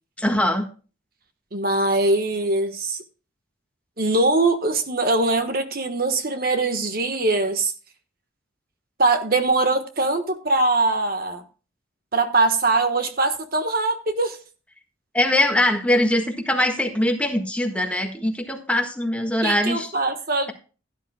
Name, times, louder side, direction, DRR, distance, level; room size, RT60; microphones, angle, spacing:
voice 1, 0.2-0.6 15.1-19.9, left 1 dB, 5° left, 1.5 m, -22 dB
voice 2, 1.5-3.0 4.0-7.7 9.0-11.4 12.1-14.4 19.4-20.5, right 2 dB, 50° right, 1.3 m, -22 dB
17.0 x 10.5 x 2.2 m
head